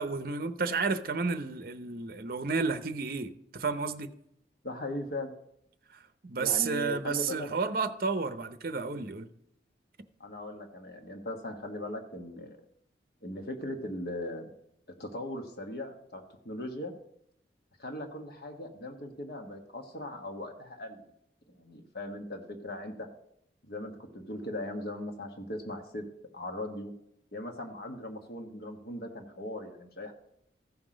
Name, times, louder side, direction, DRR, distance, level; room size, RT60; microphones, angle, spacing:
voice 1, 0.0-4.1 6.2-9.3, right 4 dB, 50° right, 0.7 m, -31 dB
voice 2, 4.6-5.3 6.4-7.5 10.2-12.6 13.2-14.5 15.0-16.9 17.8-21.1 21.5-23.1 23.6-26.1 26.3-26.9 27.3-30.1, left 1 dB, 55° left, 1.3 m, -39 dB
14.5 x 5.9 x 5.0 m
head